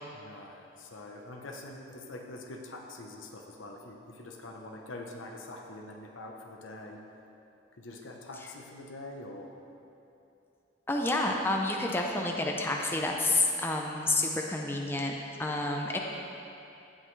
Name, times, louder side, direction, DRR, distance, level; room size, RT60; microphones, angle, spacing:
voice 1, 0.1-7.0 7.8-9.5, left 2 dB, 90° left, 1 dB, 1.0 m, -44 dB
voice 2, 10.9-15.1 15.4-16.0, left 2 dB, 10° left, 0 dB, 0.5 m, -29 dB
16.5 x 5.6 x 3.3 m, 2.8 s
head